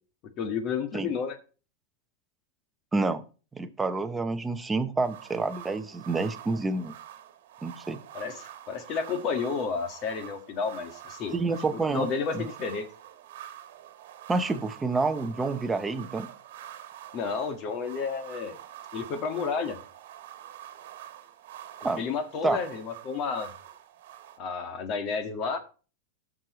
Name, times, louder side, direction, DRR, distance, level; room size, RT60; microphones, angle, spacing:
voice 1, 0.4-1.4 8.1-11.4 11.9-12.9 17.1-18.6 18.9-19.8 22.0-23.5 24.4-25.6, left 5 dB, 40° left, 1.6 m, -31 dB
voice 2, 2.9-3.2 3.5-6.9 7.6-8.0 11.3-12.1 12.3-12.4 14.3-16.3 21.8-22.0 22.4-22.6, right 3 dB, 10° right, 0.8 m, -28 dB
sound 1, 5.0-24.4, right 11 dB, 70° right, 1.4 m, -46 dB
16.0 x 6.3 x 3.1 m
supercardioid pair, 140°, 0 cm